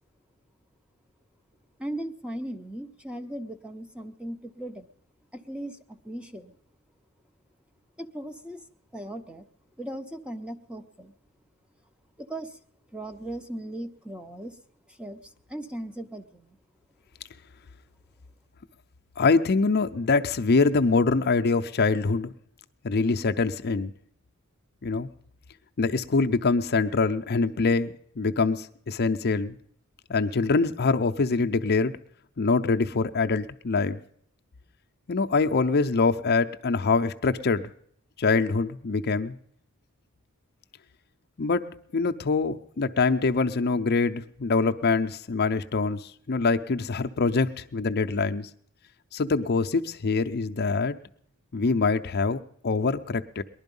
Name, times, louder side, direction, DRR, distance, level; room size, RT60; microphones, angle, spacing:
voice 1, 1.8-4.9 5.3-5.8 6.0-6.5 8.0-8.6 8.9-9.5 9.8-11.1 12.2-12.5 12.9-14.5 15.0-15.2 15.5-16.5, right 1 dB, 5° right, 7 dB, 0.7 m, -37 dB
voice 2, 19.2-22.3 22.8-23.9 24.8-25.1 25.8-29.6 30.1-32.0 32.4-34.0 35.1-37.7 38.2-39.4 41.4-41.7 41.9-48.5 49.1-51.0 51.5-53.4, left 4 dB, 45° left, 7 dB, 0.5 m, -24 dB
19.5 x 11.5 x 5.4 m, 0.65 s
head